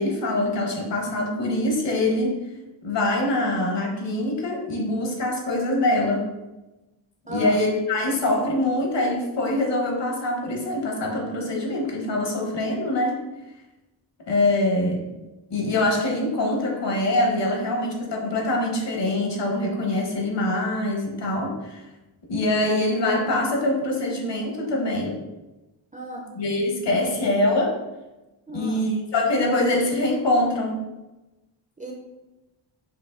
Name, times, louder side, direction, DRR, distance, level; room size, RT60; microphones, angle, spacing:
voice 1, 0.0-2.4 2.8-6.3 7.3-13.1 14.3-15.0 15.5-21.8 22.3-25.2 26.3-27.8 28.5-30.8, left 1 dB, 60° left, 0 dB, 1.1 m, -24 dB
voice 2, 7.3-7.6 25.9-26.2 28.5-28.8 31.8-31.9, right 1 dB, 20° right, -1 dB, 0.4 m, -34 dB
5.0 x 2.5 x 3.8 m, 1.0 s
wide cardioid pair, 160°, 49 cm